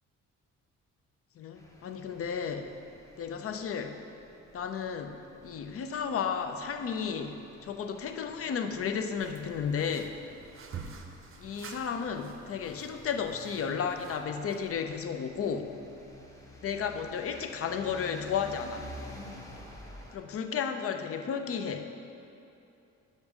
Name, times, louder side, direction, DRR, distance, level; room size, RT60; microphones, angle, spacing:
voice 1, 1.4-2.7 3.2-4.0 4.5-10.2 11.4-15.7 16.6-18.9 20.1-21.9, left 6 dB, 50° left, 6 dB, 0.6 m, -33 dB
sound 1, 1.6-20.2, left 1 dB, 10° left, 0.9 m, -51 dB
sound 2, 9.2-14.7, right 5 dB, 45° right, 0.6 m, -48 dB
5.4 x 5.3 x 6.0 m, 2.8 s
cardioid pair, 90°, 30 cm